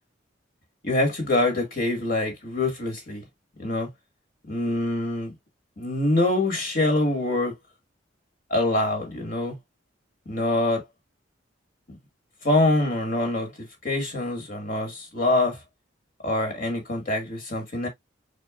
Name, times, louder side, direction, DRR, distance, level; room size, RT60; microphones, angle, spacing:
voice 1, 0.8-3.3 3.6-3.9 4.5-5.3 5.8-7.5 8.5-9.6 10.3-10.8 11.9-12.0 12.4-15.6 16.2-17.9, left 2 dB, 45° left, 2.2 m, -25 dB
4.6 x 4.5 x 2.4 m
head